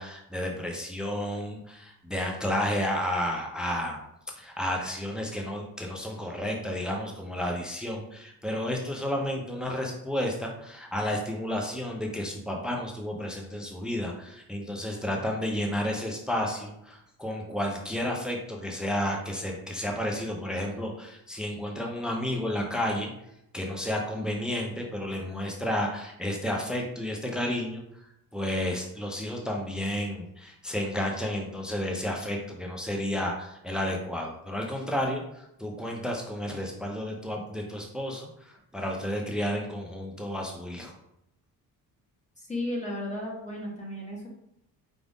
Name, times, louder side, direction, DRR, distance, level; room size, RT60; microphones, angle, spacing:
voice 1, 0.0-4.0 4.3-23.1 23.5-40.9, left 1 dB, ahead, 0 dB, 0.7 m, -31 dB
voice 2, 42.4-44.3, left 1 dB, 20° left, -3 dB, 1.5 m, -34 dB
5.0 x 2.6 x 3.5 m, 0.80 s
cardioid pair, 95°, 37 cm